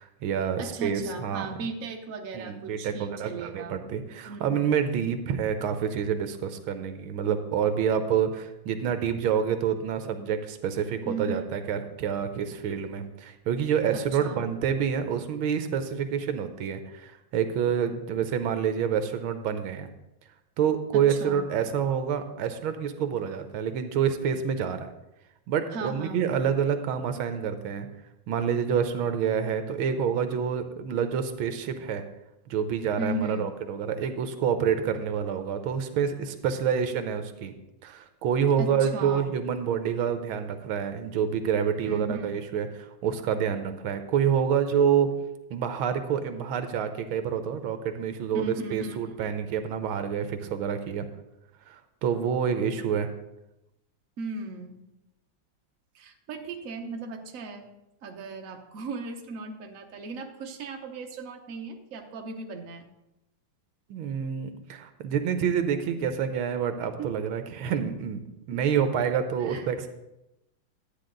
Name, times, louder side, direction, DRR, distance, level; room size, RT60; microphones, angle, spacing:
voice 1, 0.0-1.5 2.3-19.9 20.6-24.9 25.5-27.9 28.3-32.0 32.5-37.5 37.8-42.7 43.0-45.1 45.5-48.4 48.7-51.0 51.7-53.1 63.9-68.2 68.5-69.9, right 7 dB, 90° right, 9 dB, 1.7 m, -27 dB
voice 2, 0.6-3.8 4.3-4.6 11.0-11.5 13.9-14.5 20.9-21.4 25.7-26.2 33.0-33.5 38.6-39.3 41.8-42.4 48.3-49.0 54.2-54.8 55.9-57.7 58.0-62.9 67.0-67.2 68.5-68.9 69.4-69.7, right 3 dB, 50° right, 3 dB, 1.2 m, -37 dB
12.0 x 9.2 x 3.9 m, 0.91 s
omnidirectional pair, 2.2 m